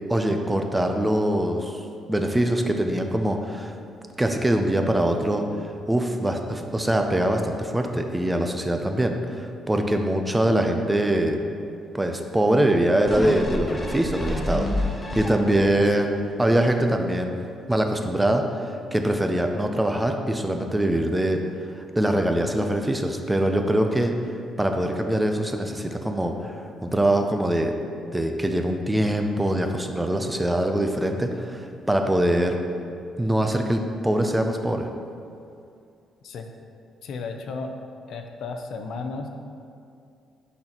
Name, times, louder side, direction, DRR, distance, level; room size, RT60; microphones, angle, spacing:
voice 1, 0.1-1.8 2.1-3.7 4.2-11.4 11.9-16.1 16.4-17.4 17.7-24.1 24.6-27.8 28.1-32.6 33.2-34.9, right 1 dB, 10° right, 4 dB, 0.4 m, -23 dB
sound 1, 13.1-15.8 16.2-16.3, left 1 dB, 15° left, 0.8 m, -29 dB
voice 2, 37.0-37.7 38.1-39.3, left 4 dB, 70° left, 5 dB, 0.5 m, -33 dB
10.5 x 4.1 x 2.9 m, 2.4 s
cardioid pair, 115°, 0 cm